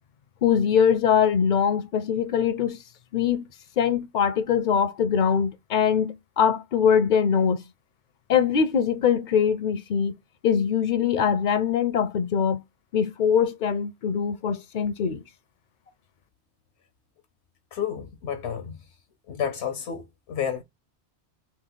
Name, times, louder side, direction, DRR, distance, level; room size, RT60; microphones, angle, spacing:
voice 1, 0.4-2.8 3.1-3.4 3.8-7.6 8.3-10.2 10.4-12.6 12.9-15.2, left 7 dB, 60° left, 0.6 m, -22 dB
voice 2, 17.7-18.9 19.3-20.6, left 8 dB, 85° left, 1.0 m, -31 dB
3.2 x 3.0 x 3.9 m
omnidirectional pair, 1.1 m